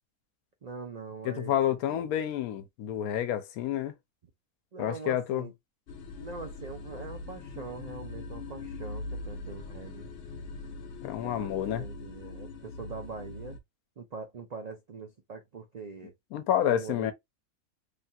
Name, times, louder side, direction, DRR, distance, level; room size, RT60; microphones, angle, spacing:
voice 1, 0.6-2.1 4.7-5.5 6.2-10.1 11.2-13.6 14.0-16.1 16.7-17.1, right 4 dB, 75° right, 0.3 m, -43 dB
voice 2, 1.2-3.9 4.8-5.4 11.0-11.9 16.3-17.1, left 11 dB, 90° left, 1.1 m, -29 dB
sound 1, 5.9-13.6, left 3 dB, 60° left, 0.7 m, -41 dB
3.3 x 2.3 x 2.7 m
omnidirectional pair, 1.5 m